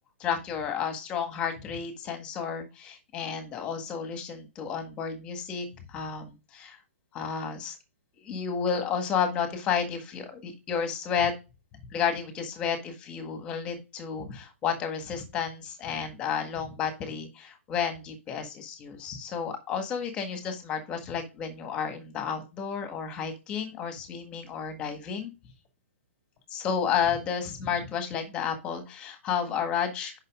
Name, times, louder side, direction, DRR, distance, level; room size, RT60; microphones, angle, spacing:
voice 1, 0.2-6.8 7.1-7.7 8.2-11.3 11.9-25.3 26.5-30.1, left 7 dB, 15° left, 6 dB, 1.7 m, -31 dB
9.7 x 5.9 x 3.7 m, 0.27 s
hypercardioid pair, 175°, 7 cm